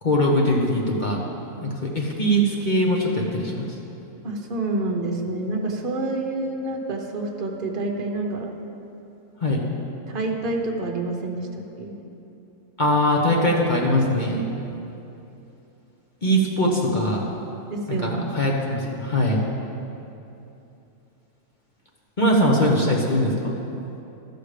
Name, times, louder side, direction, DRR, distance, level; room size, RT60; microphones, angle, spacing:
voice 1, 0.0-1.2 1.6-3.7 9.4-9.6 12.8-14.4 16.2-17.2 17.9-19.4 22.2-23.5, equal, 35° left, -2 dB, 1.0 m, -21 dB
voice 2, 4.2-8.5 10.1-12.0 17.7-18.2, right 2 dB, 40° right, 1 dB, 1.0 m, -28 dB
13.0 x 6.5 x 5.0 m, 2.9 s
omnidirectional pair, 1.6 m